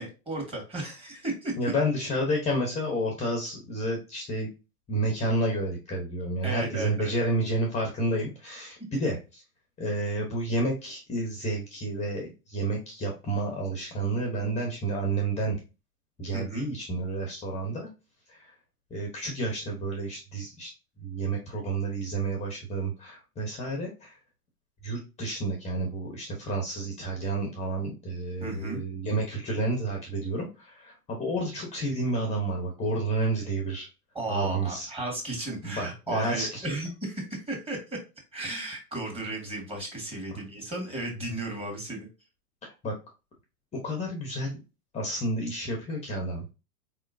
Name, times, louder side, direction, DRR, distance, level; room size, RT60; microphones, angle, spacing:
voice 1, 0.0-1.5 6.4-7.3 16.3-16.7 28.4-28.8 34.1-38.0 38.3-42.1, right 2 dB, 15° right, 0 dB, 2.2 m, -34 dB
voice 2, 1.6-4.5 4.9-9.4 9.8-15.6 16.2-17.9 18.3-18.5 18.9-20.7 21.0-24.2 24.8-33.9 34.3-34.9 35.6-36.7 42.6-42.9 43.8-44.6 44.9-46.5, right 1 dB, 15° left, 1 dB, 1.1 m, -30 dB
4.4 x 3.6 x 2.6 m, 0.29 s
hypercardioid pair, 125°, 45 cm